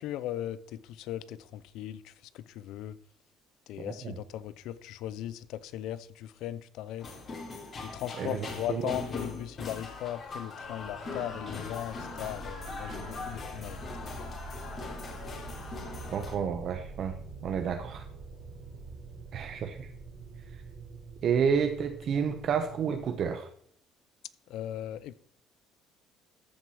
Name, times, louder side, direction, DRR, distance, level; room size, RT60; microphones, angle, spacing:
voice 1, 0.0-3.0 3.7-7.1 7.8-13.8 14.2-14.3 24.5-25.1, left 12 dB, 75° left, 0.6 m, -38 dB
voice 2, 3.8-4.1 8.2-8.9 16.1-17.1 17.4-18.0 19.3-19.9 21.2-23.5, right 7 dB, 50° right, 0.9 m, -30 dB
sound 1, 7.0-16.3, left 3 dB, 35° left, 3.0 m, -41 dB
sound 2, 10.6-23.2, right 3 dB, 75° right, 4.3 m, -45 dB
14.0 x 4.7 x 5.9 m
cardioid pair, 115°, 0 cm